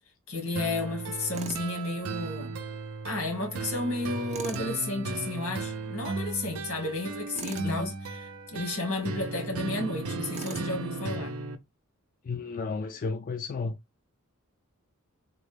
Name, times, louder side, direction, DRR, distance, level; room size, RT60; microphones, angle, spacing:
voice 1, 0.3-2.6 3.0-11.4, left 2 dB, 85° left, 1.7 m, -32 dB
sound 1, 0.6-11.6, right 3 dB, 85° right, 0.5 m, -36 dB
Tools, 1.3-1.7 4.3-4.7 7.3-7.7 10.3-10.7, right 5 dB, 30° right, 0.4 m, -40 dB
voice 2, 7.6-7.9 12.2-13.7, left 4 dB, 40° left, 0.3 m, -33 dB
3.8 x 2.1 x 3.1 m
head